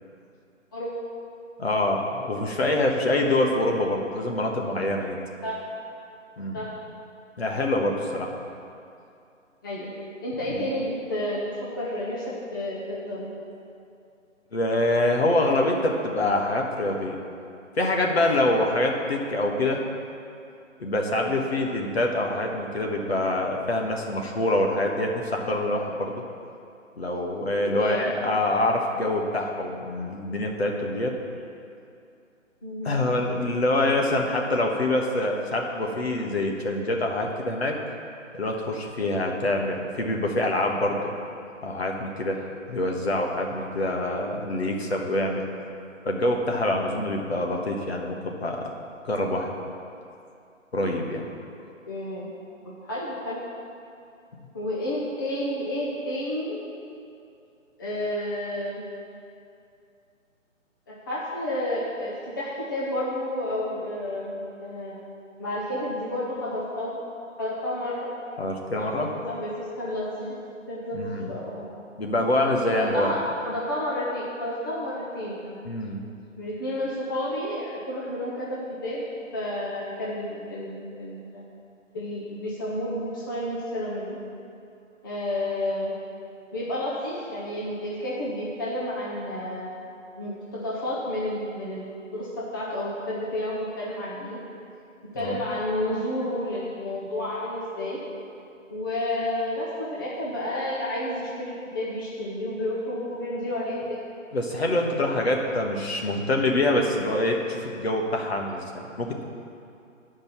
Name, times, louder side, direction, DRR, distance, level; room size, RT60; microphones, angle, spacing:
voice 1, 1.6-5.2 6.4-6.6 7.4-8.3 10.5-10.6 14.5-17.2 17.8-19.8 20.8-26.2 27.0-31.1 32.8-37.8 38.3-41.1 41.6-45.4 46.0-48.6 49.0-49.5 50.7-51.3 68.4-69.1 70.9-71.3 72.0-73.1 75.6-76.0 95.2-95.4 104.3-109.2, left 1 dB, 50° left, 1 dB, 1.3 m, -25 dB
voice 2, 10.2-11.5 11.8-12.2 12.5-13.3 21.1-21.4 27.6-28.1 32.6-33.0 39.0-39.3 46.8-47.0 51.9-52.3 52.8-53.4 54.5-56.6 57.8-58.8 60.9-65.0 65.4-67.0 67.4-68.1 68.7-70.3 70.7-71.6 72.7-75.5 76.4-79.1 79.3-81.4 81.9-84.2 85.0-85.9 86.5-89.7 90.2-94.4 95.1-98.0 98.7-104.0, left 1 dB, 15° left, -7 dB, 0.9 m, -31 dB
10.0 x 5.3 x 7.2 m, 2.6 s
figure-of-eight pair, 150°, 39 cm